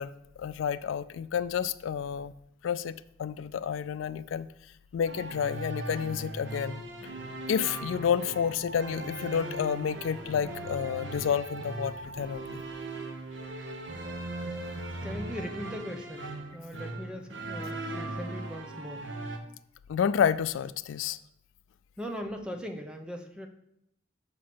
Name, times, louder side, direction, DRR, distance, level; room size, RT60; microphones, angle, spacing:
voice 1, 0.0-2.3 2.6-4.5 4.9-6.8 7.5-12.6 19.9-21.2, left 8 dB, 85° left, 14 dB, 0.3 m, -30 dB
sound 1, 5.1-19.4, right 2 dB, 70° right, 1.0 m, -38 dB
voice 2, 15.0-19.1 22.0-23.5, equal, 5° right, 4 dB, 0.8 m, -39 dB
6.9 x 4.7 x 6.0 m, 0.73 s
head